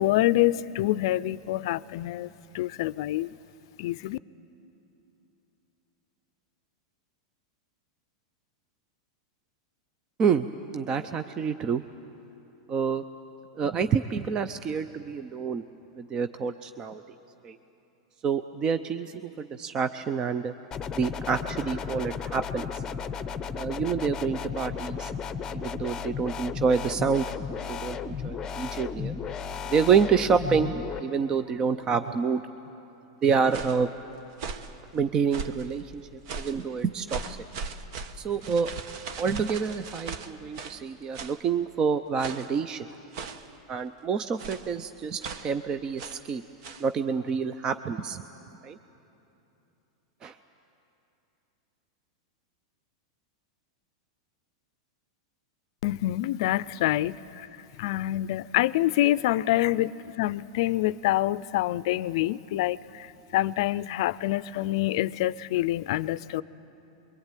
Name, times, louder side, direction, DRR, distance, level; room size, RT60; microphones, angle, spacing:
voice 1, 0.0-3.3 3.8-4.2 55.8-57.5 57.8-66.4, left 15 dB, 60° left, 18 dB, 0.5 m, -26 dB
voice 2, 10.7-11.8 12.7-13.0 13.6-15.7 15.9-17.0 17.4-17.6 18.2-20.5 20.9-22.8 23.5-25.1 25.5-27.3 27.7-29.1 29.7-30.7 31.0-32.4 33.2-33.9 34.9-36.0 36.4-37.4 38.2-38.7 39.2-42.9 43.7-46.4 46.8-48.2 48.6-48.8 50.2-50.3, right 6 dB, 25° right, 10 dB, 0.6 m, -27 dB
sound 1, 20.7-31.0, left 6 dB, 20° left, 0.8 m, -34 dB
sound 2, 33.3-33.9 34.3-34.8 35.3-35.7 36.3-36.6 37.1-40.8 41.1-41.4 42.2-42.6 43.1-43.5 44.4-44.7 45.2-45.5 46.0-46.3 46.6-46.9, right 5 dB, 55° right, 1.2 m, -38 dB
24.5 x 22.5 x 9.1 m, 2.9 s
supercardioid pair, 140°, 3 cm